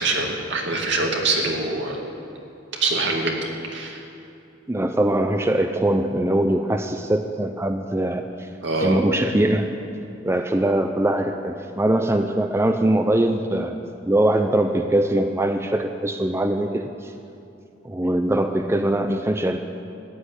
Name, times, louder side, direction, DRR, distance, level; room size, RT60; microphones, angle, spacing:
voice 1, 0.0-2.0 2.7-4.0 8.6-9.0, right 2 dB, 70° right, 0 dB, 2.4 m, -24 dB
voice 2, 4.7-8.5 8.8-9.7 10.2-13.8 14.1-17.1 17.8-19.6, right 1 dB, 15° right, 6 dB, 0.5 m, -22 dB
14.5 x 8.8 x 9.9 m, 2.8 s
head